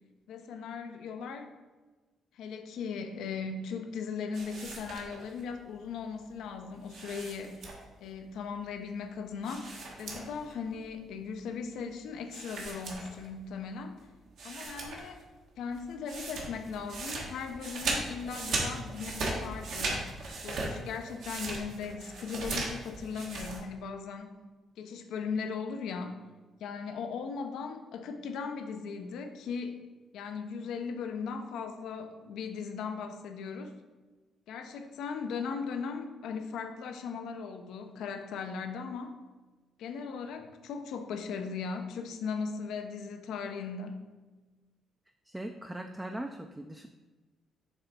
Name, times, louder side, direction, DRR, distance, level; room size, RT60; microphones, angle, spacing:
voice 1, 0.3-1.5 2.3-7.6 8.0-14.0 14.4-15.2 15.6-20.0 20.4-24.4 24.8-26.2 26.6-29.8 30.1-33.8 34.5-39.2 39.8-44.0, left 5 dB, 80° left, 6 dB, 0.6 m, -38 dB
sound 1, 4.3-5.4 6.9-8.0 9.4-10.5 10.8-10.9 12.3-13.5 14.0-14.1 14.4-15.2 15.5-23.6, right 3 dB, 75° right, 1.4 m, -37 dB
voice 2, 45.3-46.9, right 1 dB, 10° right, 4 dB, 0.4 m, -40 dB
6.8 x 3.4 x 4.2 m, 1.2 s
cardioid pair, 90°, 0 cm